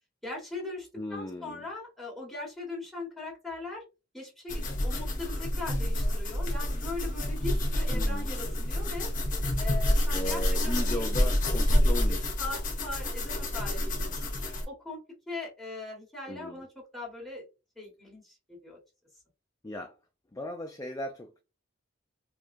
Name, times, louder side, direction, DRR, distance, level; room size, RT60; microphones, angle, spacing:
voice 1, 0.2-3.8 4.1-9.1 9.6-11.0 11.7-14.2 14.7-15.0 15.3-16.7 16.9-17.4 17.8-18.8, left 2 dB, ahead, 1.8 m, -40 dB
voice 2, 0.9-1.7 7.9-8.3 10.1-12.4 16.3-16.6 19.6-20.0 20.3-21.4, left 1 dB, 15° left, 0.4 m, -37 dB
sound 1, 4.5-14.6, left 1 dB, 40° left, 1.0 m, -28 dB
4.7 x 2.3 x 2.6 m
head